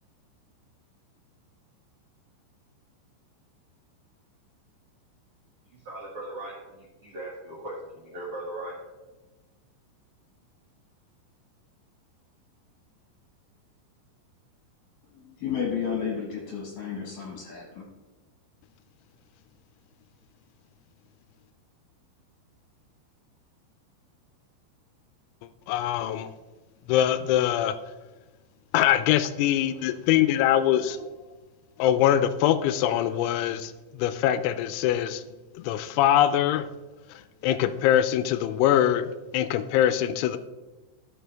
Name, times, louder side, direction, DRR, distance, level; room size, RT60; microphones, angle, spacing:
voice 1, 5.7-8.8, right 1 dB, 60° right, -6 dB, 1.5 m, -39 dB
voice 2, 15.0-17.8, left 7 dB, 65° left, -1 dB, 2.3 m, -32 dB
voice 3, 25.7-26.3 26.9-27.8 28.7-31.1 31.8-35.2 35.6-36.7 37.4-39.1 39.3-40.4, left 11 dB, 85° left, 12 dB, 2.9 m, -23 dB
14.5 x 5.6 x 3.4 m, 1.2 s
omnidirectional pair, 5.6 m